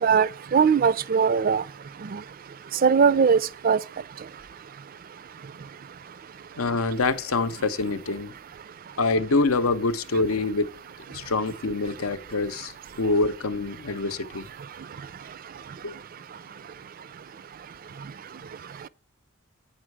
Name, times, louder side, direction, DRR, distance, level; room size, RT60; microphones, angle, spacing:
voice 1, 0.0-1.6 2.1-2.2 2.8-3.4 3.6-3.8, right 6 dB, 40° right, 0.3 m, -20 dB
voice 2, 6.6-8.3 9.0-10.8 11.1-12.7 13.0-14.5 15.8-15.9, left 3 dB, 90° left, 0.8 m, -25 dB
8.9 x 5.5 x 4.7 m
head